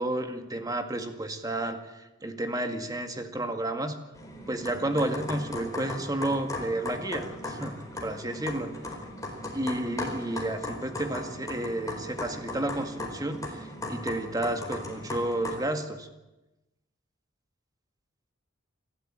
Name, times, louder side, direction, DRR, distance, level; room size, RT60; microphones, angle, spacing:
voice 1, 0.0-4.0 4.5-8.7 9.5-16.1, right 1 dB, 20° right, 6 dB, 2.0 m, -31 dB
sound 1, 4.1-15.6, left 1 dB, 20° left, 4.5 m, -37 dB
28.5 x 13.0 x 9.0 m, 1.0 s
head